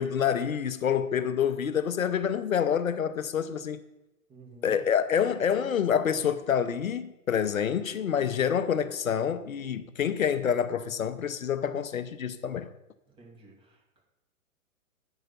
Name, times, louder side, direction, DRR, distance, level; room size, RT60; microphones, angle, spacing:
voice 1, 0.0-3.8 4.6-12.7, left 8 dB, 70° left, 0.7 m, -27 dB
voice 2, 4.3-4.8 13.1-14.0, right 4 dB, 10° right, 1.7 m, -52 dB
8.9 x 5.8 x 5.5 m
figure-of-eight pair, 120°, 42 cm